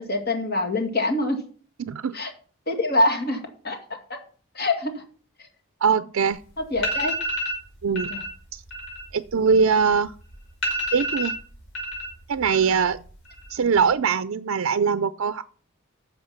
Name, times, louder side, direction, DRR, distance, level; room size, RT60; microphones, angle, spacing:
voice 1, 0.0-1.4 2.1-2.3 2.7-3.8 4.6-5.0 6.7-7.1 8.1-8.2, left 2 dB, 50° left, 3 dB, 2.3 m, -24 dB
voice 2, 1.8-2.2 5.8-6.4 7.8-8.1 8.5-8.6 9.1-10.1 10.9-11.3 12.3-13.0 13.5-15.4, right 6 dB, 80° right, 12 dB, 0.5 m, -22 dB
sound 1, 6.3-6.4 6.7-7.6 8.0-8.3 8.6-10.0 10.3-10.4 10.6-12.1 12.4-13.0 13.3-13.8, left 1 dB, 65° left, 5.0 m, -29 dB
10.5 x 7.1 x 5.9 m, 0.43 s
head